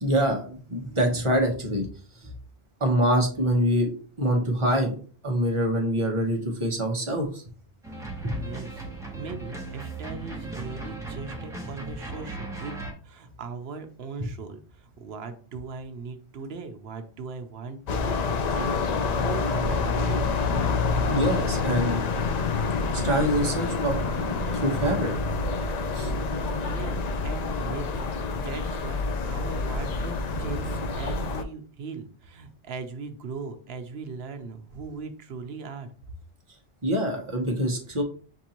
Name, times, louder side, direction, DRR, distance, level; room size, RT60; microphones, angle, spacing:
voice 1, 0.0-1.9 2.8-3.9 4.2-5.0 5.2-7.4 8.2-8.3 21.1-22.0 22.9-24.0 24.2-25.1 25.9-26.1 36.8-38.0, equal, 30° right, 1 dB, 1.0 m, -25 dB
sound 1, 7.8-12.9, right 2 dB, 5° right, 0.9 m, -37 dB
voice 2, 8.3-8.9 9.1-20.3 20.6-20.7 26.6-35.9, right 4 dB, 65° right, 7 dB, 0.9 m, -39 dB
sound 2, 17.9-31.4, left 4 dB, 55° left, 0.4 m, -27 dB
6.6 x 2.6 x 2.9 m, 0.42 s
omnidirectional pair, 1.1 m